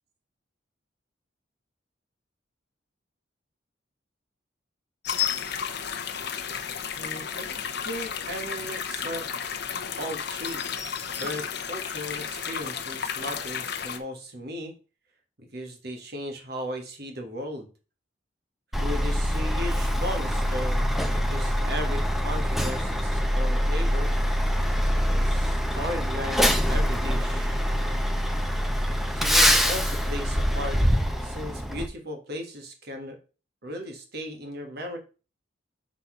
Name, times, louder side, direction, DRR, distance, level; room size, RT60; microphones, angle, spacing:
sound 1, 5.0-14.0, left 8 dB, 60° left, 0.8 m, -32 dB
voice 1, 6.9-7.5 7.8-9.3 10.0-10.6 11.1-14.7 15.4-17.7 18.7-20.8 21.1-24.1 25.1-27.7 29.1-30.8 31.2-33.2 33.6-35.0, equal, 55° right, 5 dB, 1.6 m, -36 dB
Truck, 18.7-31.9, equal, ahead, 0.6 m, -24 dB
6.3 x 4.1 x 5.0 m, 0.34 s
head